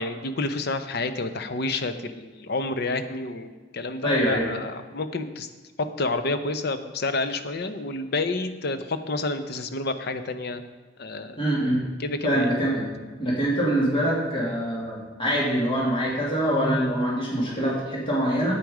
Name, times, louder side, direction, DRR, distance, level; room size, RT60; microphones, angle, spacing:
voice 1, 0.0-5.5 5.8-10.6 11.0-11.4 12.0-12.5, left 2 dB, 55° left, 9 dB, 0.7 m, -29 dB
voice 2, 4.0-4.5 11.4-11.8 12.2-12.9 13.2-18.5, equal, 25° left, -5 dB, 2.4 m, -24 dB
9.4 x 8.5 x 4.9 m, 1.4 s
head